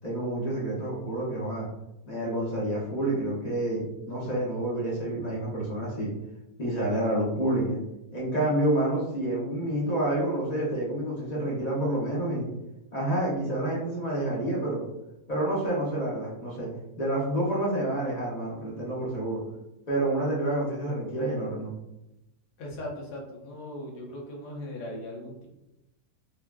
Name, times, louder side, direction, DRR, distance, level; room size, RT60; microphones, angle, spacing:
voice 1, 0.0-1.7 2.1-6.1 6.6-7.8 8.1-12.5 12.9-14.8 15.3-16.7 17.0-19.4 19.9-21.7, right 1 dB, 50° left, -6 dB, 0.5 m, -28 dB
voice 2, 22.6-25.5, left 1 dB, 80° left, -1 dB, 1.3 m, -38 dB
3.6 x 2.2 x 2.3 m, 0.92 s
omnidirectional pair, 1.7 m